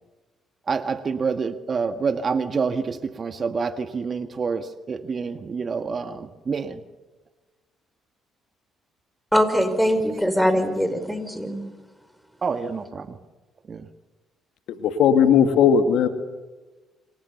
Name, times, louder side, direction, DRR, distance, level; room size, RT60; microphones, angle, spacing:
voice 1, 0.7-6.8 9.9-10.2 12.4-13.2 13.7-13.9, right 5 dB, 45° right, 10 dB, 1.8 m, -27 dB
voice 2, 9.3-11.7, equal, ahead, 9 dB, 5.6 m, -22 dB
voice 3, 14.8-16.1, left 7 dB, 70° left, 9 dB, 2.4 m, -17 dB
28.0 x 27.0 x 7.0 m, 1.2 s
hypercardioid pair, 50°, 0 cm